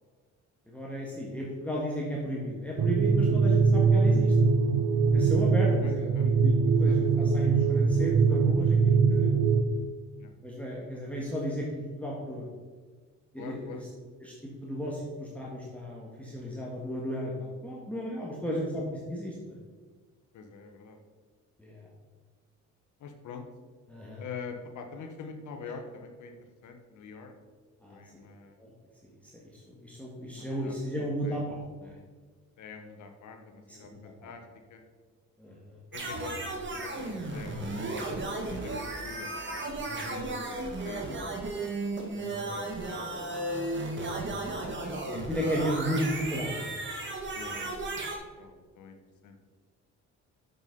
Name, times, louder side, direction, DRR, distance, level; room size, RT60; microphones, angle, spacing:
voice 1, 0.7-4.3 5.1-9.4 10.4-12.5 13.3-13.8 14.2-14.3 14.6-18.8 19.1-19.6 21.6-21.8 23.9-24.2 27.8-28.0 28.6-28.7 29.3-31.9 33.7-34.3 35.4-35.8 38.4-38.7 39.8-40.4 42.1-42.5 44.2-44.4 45.1-46.7, equal, 5° left, -5 dB, 1.7 m, -35 dB
sound 1, 2.8-9.6, right 5 dB, 60° right, 0.7 m, -22 dB
voice 2, 5.8-6.3 6.8-7.3 10.2-10.3 13.4-13.8 18.5-18.6 20.3-21.0 23.0-23.4 24.2-26.4 26.6-27.3 27.9-28.5 30.3-31.4 32.6-34.4 34.7-34.8 35.9-39.3 40.1-40.6 40.8-41.7 42.3-43.4 47.3-48.0 48.4-49.4, left 5 dB, 75° left, 5 dB, 1.2 m, -45 dB
sound 2, 35.9-48.2, right 2 dB, 40° right, 1.7 m, -35 dB
7.0 x 6.0 x 5.3 m, 1.5 s
cardioid pair, 90°, 30 cm